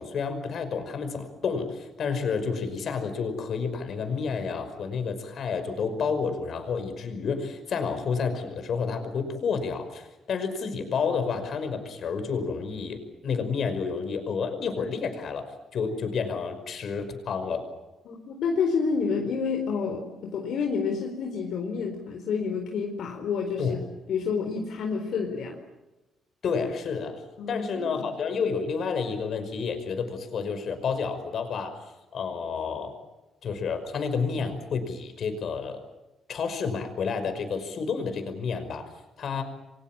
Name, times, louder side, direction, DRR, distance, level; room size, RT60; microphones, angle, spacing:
voice 1, 0.0-17.7 23.6-23.8 26.4-27.2 27.5-31.8 32.1-33.0 33.4-35.8 36.3-38.9 39.2-39.4, left 5 dB, 55° left, 9 dB, 5.5 m, -30 dB
voice 2, 18.1-23.8 24.1-25.6 27.4-28.1, left 5 dB, 70° left, 2 dB, 4.2 m, -29 dB
29.5 x 24.0 x 7.5 m, 1.0 s
cardioid pair, 130°, 0 cm